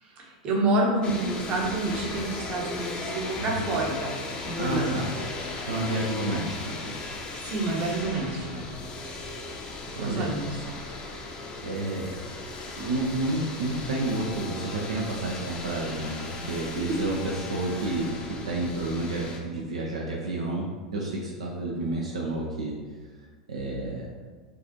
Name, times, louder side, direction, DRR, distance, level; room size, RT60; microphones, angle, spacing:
voice 1, 0.0-4.1 4.5-5.1 7.4-8.7 9.9-10.7 16.4-16.5 21.7-21.9, right 2 dB, 40° right, -2 dB, 0.9 m, -28 dB
sound 1, 1.0-19.4, left 3 dB, 30° left, 0.6 m, -37 dB
voice 2, 4.5-5.1 5.6-6.9 9.9-10.3 11.6-12.3 12.8-22.8 23.5-24.1, right 2 dB, 75° right, -2 dB, 0.5 m, -30 dB
4.6 x 2.5 x 2.9 m, 1.4 s
figure-of-eight pair, 85°, 3 cm